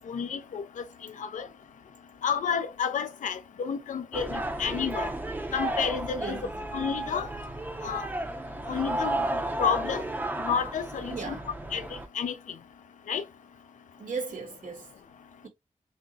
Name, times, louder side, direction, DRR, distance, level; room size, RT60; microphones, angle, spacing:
voice 1, 0.1-0.8 1.2-1.5 2.2-5.1 5.5-6.4 6.7-7.3 7.8-8.1 8.7-9.2 9.6-10.0 10.4-11.4 11.7-12.3 13.1-13.2, left 7 dB, 80° left, 0.4 m, -30 dB
sound 1, 4.1-12.1, right 1 dB, 15° right, 0.4 m, -33 dB
voice 2, 6.2-6.5 11.1-11.5 14.0-14.9, right 4 dB, 85° right, 1.3 m, -36 dB
6.0 x 2.0 x 2.6 m
wide cardioid pair, 165°, 13 cm